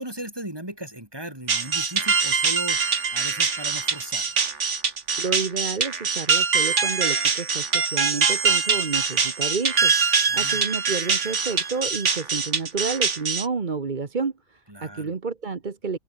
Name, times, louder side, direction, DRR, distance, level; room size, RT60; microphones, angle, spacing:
voice 1, 0.0-2.8 3.1-4.4 10.3-10.6 14.7-15.1, right 1 dB, 15° right, 5.4 m, -37 dB
sound 1, 1.5-13.5, right 5 dB, 55° right, 2.1 m, -23 dB
voice 2, 5.2-16.0, right 4 dB, 35° right, 1.3 m, -30 dB
omnidirectional pair, 1.5 m